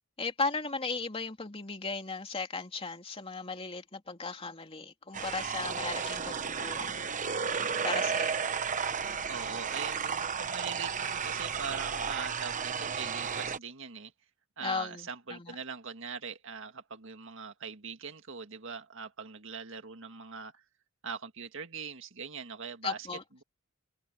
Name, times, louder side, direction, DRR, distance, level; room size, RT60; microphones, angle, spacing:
voice 1, 0.2-7.0 7.8-8.4 14.6-15.5 22.8-23.2, left 4 dB, 30° left, 3.1 m, -36 dB
sound 1, 5.1-13.6, right 6 dB, 40° right, 1.0 m, -33 dB
voice 2, 9.3-14.1 14.6-20.6 21.0-23.1, right 6 dB, 65° right, 1.9 m, -42 dB
head